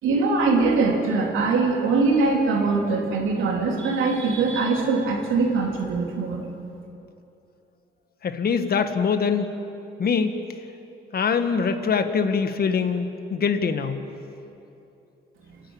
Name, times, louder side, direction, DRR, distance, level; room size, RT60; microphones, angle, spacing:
voice 1, 0.0-6.4, right 3 dB, 90° right, 0 dB, 3.4 m, -22 dB
voice 2, 8.2-9.5 10.0-10.3 11.1-14.0, left 5 dB, 50° left, 8 dB, 1.7 m, -23 dB
29.5 x 11.0 x 8.9 m, 2.8 s
cardioid pair, 90°, 20 cm